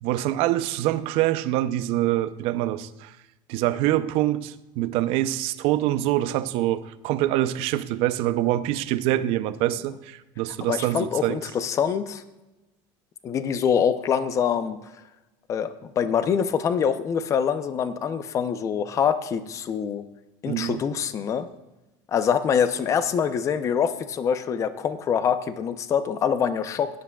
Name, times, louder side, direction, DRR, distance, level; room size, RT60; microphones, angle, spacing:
voice 1, 0.0-3.1 3.5-11.4 20.5-20.8, right 14 dB, 60° right, 0.6 m, -25 dB
voice 2, 10.7-12.2 13.2-14.8 15.5-20.0 20.4-21.5 22.1-26.9, left 7 dB, 30° left, 0.6 m, -25 dB
17.0 x 9.9 x 2.3 m
cardioid pair, 155°, 11 cm